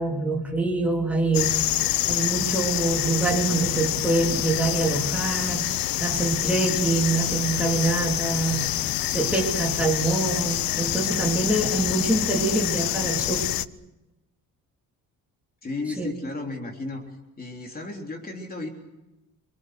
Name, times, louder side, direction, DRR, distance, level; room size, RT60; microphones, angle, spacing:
voice 1, 0.0-5.7 6.0-13.5 16.0-16.1, right 3 dB, 5° right, -1 dB, 3.4 m, -25 dB
sound 1, 1.3-13.7, left 13 dB, 70° left, 0.9 m, -26 dB
voice 2, 15.6-17.0 17.4-18.7, left 2 dB, 25° left, 1 dB, 3.6 m, -33 dB
27.0 x 22.5 x 6.6 m, 0.99 s
cardioid pair, 140°, 35 cm